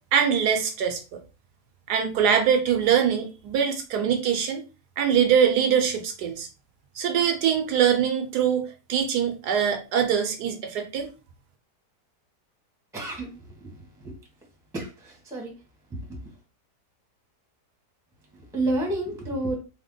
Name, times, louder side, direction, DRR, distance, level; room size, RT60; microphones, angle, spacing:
voice 1, 0.1-1.2 1.9-4.6 5.0-6.5 7.0-11.1, right 8 dB, 75° right, 5 dB, 1.2 m, -23 dB
voice 2, 12.9-14.2 14.7-15.5 15.9-16.2 18.3-19.6, right 2 dB, 5° right, 0 dB, 0.8 m, -31 dB
3.4 x 2.1 x 3.8 m, 0.31 s
omnidirectional pair, 1.8 m